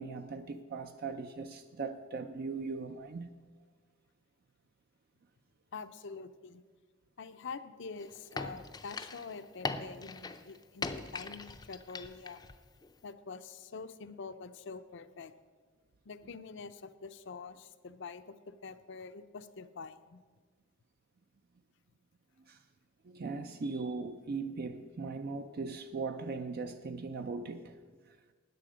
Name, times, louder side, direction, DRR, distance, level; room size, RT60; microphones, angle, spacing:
voice 1, 0.0-3.3 22.5-22.6 23.0-27.8 28.1-28.2, right 4 dB, 50° right, 0.4 m, -39 dB
voice 2, 5.7-6.6 7.2-12.4 13.0-15.3 16.0-20.2, left 4 dB, 65° left, 0.6 m, -46 dB
sound 1, 8.0-12.6 12.8-12.9, left 3 dB, 20° left, 0.5 m, -41 dB
13.5 x 9.3 x 5.0 m
head